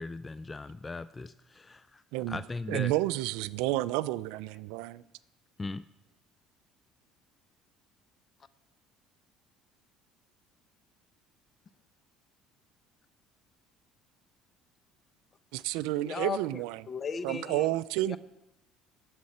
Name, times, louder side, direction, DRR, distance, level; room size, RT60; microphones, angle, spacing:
voice 1, 0.0-3.0 5.6-5.8, left 3 dB, 20° left, 0.3 m, -39 dB
voice 2, 2.7-5.0 15.5-16.8 17.2-18.2, right 16 dB, 85° right, 0.4 m, -30 dB
voice 3, 16.0-16.4 16.9-17.7 18.1-18.2, left 6 dB, 35° left, 0.7 m, -35 dB
19.5 x 7.5 x 4.2 m
supercardioid pair, 100°, 0 cm